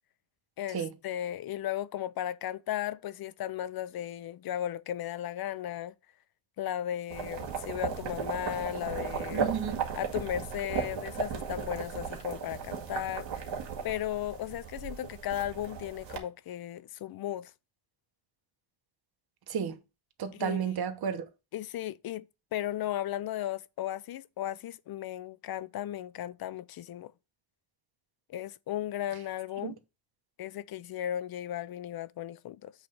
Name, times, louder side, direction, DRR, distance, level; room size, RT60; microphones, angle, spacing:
voice 1, 0.6-5.9 6.6-9.5 10.0-13.5 13.8-17.5 20.3-20.8 21.5-27.1 28.3-29.8 30.4-32.7, left 12 dB, 50° left, 0.5 m, -36 dB
sound 1, 7.1-16.2, right 6 dB, 65° right, 2.0 m, -36 dB
voice 2, 9.3-9.8 19.5-19.8 20.2-21.2 29.6-29.7, right 7 dB, 50° right, 1.1 m, -32 dB
7.8 x 3.3 x 5.4 m
cardioid pair, 120°, 49 cm